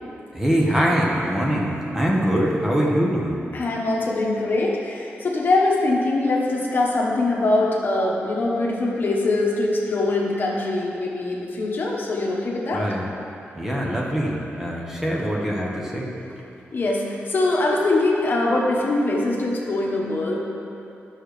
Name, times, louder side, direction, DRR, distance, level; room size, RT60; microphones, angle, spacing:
voice 1, 0.3-3.4 12.7-13.1 13.6-16.4, equal, 10° right, -3 dB, 1.0 m, -23 dB
voice 2, 3.5-12.9 16.7-20.4, left 2 dB, 50° left, -2 dB, 1.2 m, -22 dB
11.0 x 6.4 x 3.3 m, 2.7 s
wide cardioid pair, 120°, 5 cm